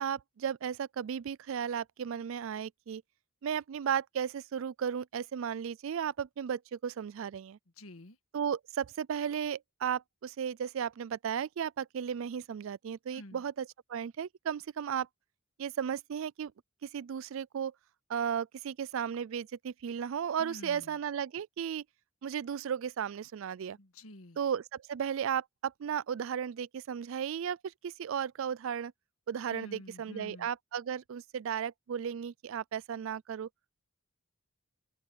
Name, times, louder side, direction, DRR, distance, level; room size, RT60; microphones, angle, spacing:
voice 1, 0.0-3.0 3.4-7.6 8.3-13.6 13.9-15.1 15.6-16.5 16.8-17.7 18.1-21.8 22.2-23.8 24.4-28.9 29.3-33.5, right 8 dB, 65° right, 0.3 m, -35 dB
voice 2, 7.8-8.2 13.1-13.4 20.4-21.0 23.8-24.4 29.5-30.5, left 1 dB, 75° left, 1.7 m, -48 dB
open air
head